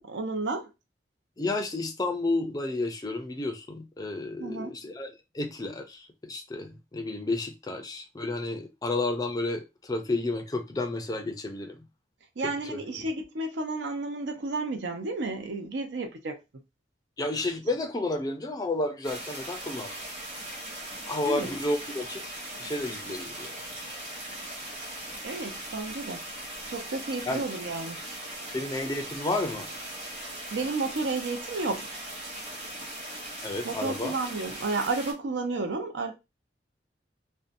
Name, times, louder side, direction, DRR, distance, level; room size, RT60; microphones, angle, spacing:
voice 1, 0.1-0.7 4.4-4.7 12.4-16.4 21.2-21.5 25.2-26.2 26.7-28.1 28.4-28.5 30.5-31.9 33.6-36.1, right 3 dB, 80° right, 0.6 m, -32 dB
voice 2, 1.4-11.9 12.4-13.1 17.2-20.0 21.1-22.2 22.6-24.0 27.3-27.4 28.5-29.7 33.4-34.1, left 2 dB, 20° left, 0.4 m, -31 dB
sound 1, 19.0-35.1, right 1 dB, 35° right, 1.0 m, -39 dB
2.7 x 2.1 x 2.5 m
head